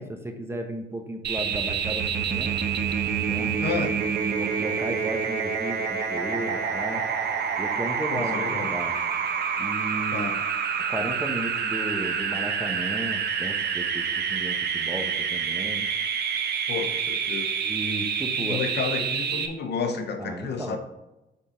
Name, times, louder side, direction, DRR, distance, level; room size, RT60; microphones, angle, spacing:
voice 1, 0.0-2.6 3.3-3.5 4.2-7.0 7.6-9.0 9.6-10.4 10.9-15.8 17.6-18.6 20.2-20.8, right 1 dB, 10° right, 1.0 m, -34 dB
sound 1, 1.2-19.5, right 6 dB, 55° right, 0.8 m, -27 dB
voice 2, 3.6-4.0 8.1-8.8 10.1-10.4 16.7-17.5 18.4-20.8, left 5 dB, 60° left, 0.8 m, -31 dB
6.9 x 3.7 x 5.0 m
cardioid pair, 90°, 20 cm